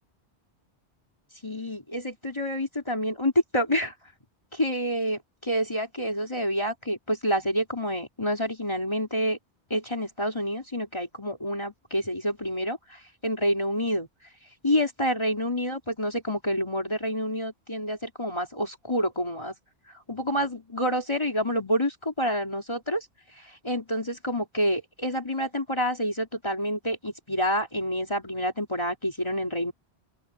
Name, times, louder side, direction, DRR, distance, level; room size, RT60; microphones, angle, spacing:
voice 1, 1.4-3.9 4.5-9.4 9.7-14.1 14.6-19.5 20.1-23.1 23.4-29.7, equal, 25° left, 3.2 m, -28 dB
open air
omnidirectional pair, 1.1 m